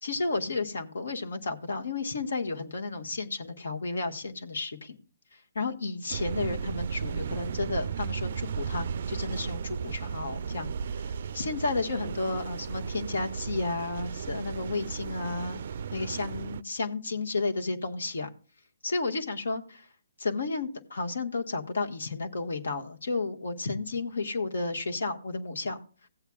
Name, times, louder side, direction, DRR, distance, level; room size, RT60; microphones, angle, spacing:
voice 1, 0.0-5.0 5.5-15.6 15.9-18.3 18.8-19.8 20.2-25.8, left 3 dB, 75° left, 5 dB, 1.5 m, -32 dB
sound 1, 6.1-16.6, right 6 dB, 55° right, 0.4 m, -35 dB
16.5 x 8.1 x 2.4 m, 0.39 s
hypercardioid pair, 145°, 0 cm